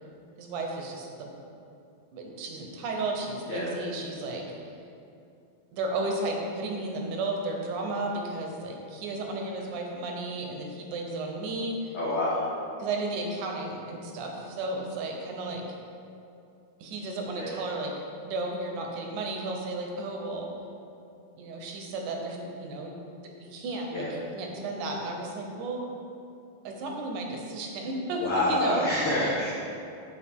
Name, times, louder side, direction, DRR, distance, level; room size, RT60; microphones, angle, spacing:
voice 1, 0.4-1.3 2.1-4.4 5.7-12.0 12.8-15.6 16.8-17.9 18.2-20.5 21.4-23.0 23.4-25.9 26.6-28.9, right 2 dB, 70° right, 1 dB, 1.9 m, -33 dB
voice 2, 11.9-12.4 17.3-17.6 23.9-24.1 28.2-29.5, left 1 dB, 85° left, -8 dB, 1.2 m, -27 dB
11.5 x 4.6 x 3.6 m, 2.6 s
omnidirectional pair, 4.4 m